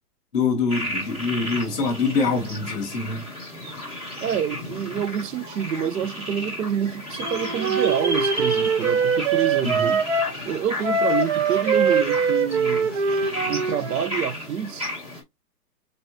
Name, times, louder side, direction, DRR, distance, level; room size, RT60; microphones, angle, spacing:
voice 1, 0.3-3.2 9.6-10.0, left 4 dB, 5° left, 0.5 m, -24 dB
sound 1, 0.7-15.2, left 1 dB, 15° right, 1.4 m, -33 dB
voice 2, 4.2-10.0 10.4-12.9 13.5-14.9, right 8 dB, 80° right, 0.7 m, -27 dB
Wind instrument woodwind instrument, 7.2-10.3 10.8-14.1, right 5 dB, 50° right, 0.8 m, -23 dB
4.1 x 3.2 x 2.6 m
hypercardioid pair, 160°, 47 cm